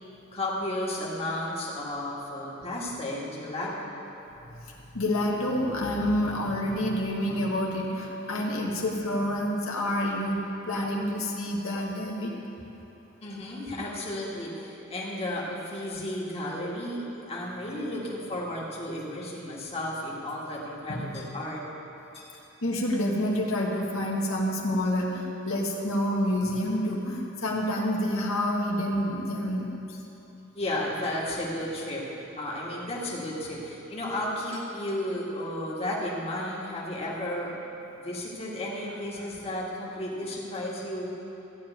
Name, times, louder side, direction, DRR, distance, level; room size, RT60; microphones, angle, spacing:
voice 1, 0.3-3.9 13.2-21.6 22.1-22.3 30.5-32.0 32.4-37.5 38.0-41.1, left 1 dB, 30° left, -5 dB, 1.9 m, -33 dB
voice 2, 4.6-12.4 20.9-21.3 22.6-30.0, left 1 dB, 85° left, -2 dB, 1.6 m, -28 dB
14.5 x 5.1 x 9.3 m, 3.0 s
head